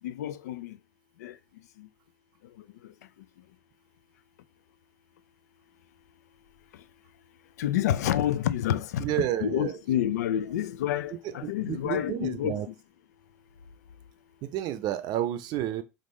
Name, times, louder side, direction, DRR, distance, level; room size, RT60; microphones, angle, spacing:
voice 1, 0.0-0.7 1.2-1.3 7.6-9.1 9.4-12.6, left 11 dB, 75° left, 0.4 m, -28 dB
voice 2, 9.0-9.8 11.4-12.7 14.4-15.8, right 12 dB, 50° right, 0.6 m, -30 dB
3.8 x 3.6 x 3.1 m
figure-of-eight pair, 70°, 9 cm